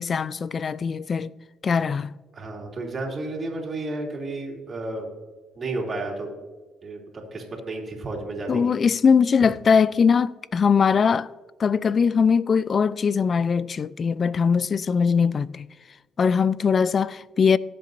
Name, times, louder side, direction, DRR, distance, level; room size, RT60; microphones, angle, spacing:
voice 1, 0.0-1.3 1.6-2.1 8.5-11.3 11.6-15.7 16.2-17.6, left 6 dB, 45° left, 0.3 m, -21 dB
voice 2, 2.3-5.1 5.5-6.3 6.8-8.7, right 2 dB, 40° right, 3.0 m, -32 dB
17.0 x 7.6 x 2.7 m
cardioid pair, 85°, 0 cm